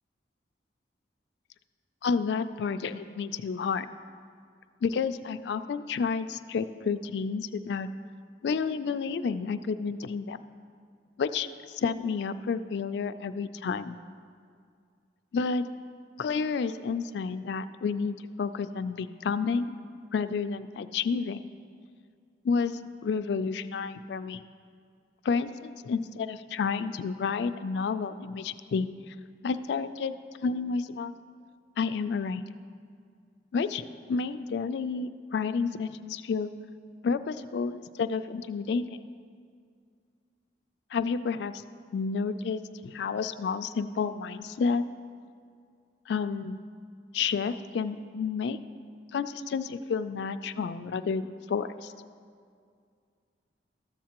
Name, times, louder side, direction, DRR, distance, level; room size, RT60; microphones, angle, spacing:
voice 1, 2.0-3.9 4.8-7.9 8.4-10.4 11.2-14.0 15.3-15.6 16.2-19.8 20.1-21.4 22.4-24.4 25.2-29.1 29.4-30.1 30.4-31.2 31.8-32.4 33.5-36.5 37.0-39.0 40.9-41.6 41.9-44.9 46.1-46.6 47.1-48.6 49.1-51.9, left 5 dB, 65° left, 11 dB, 0.3 m, -30 dB
13.5 x 7.3 x 2.9 m, 2.2 s
head